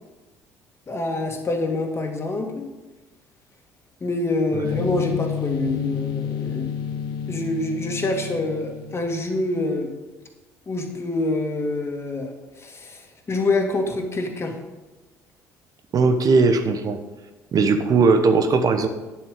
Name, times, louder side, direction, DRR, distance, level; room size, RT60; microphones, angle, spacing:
voice 1, 0.9-2.6 4.0-6.8 7.3-10.0 10.7-14.6, left 2 dB, 30° left, 3 dB, 2.0 m, -26 dB
voice 2, 4.5-4.9 15.9-17.0 17.5-18.9, right 4 dB, 50° right, 8 dB, 1.1 m, -19 dB
sound 1, 4.6-9.5, left 9 dB, 65° left, 0.9 m, -30 dB
9.4 x 7.6 x 5.0 m, 1.1 s
hypercardioid pair, 60°, 8 cm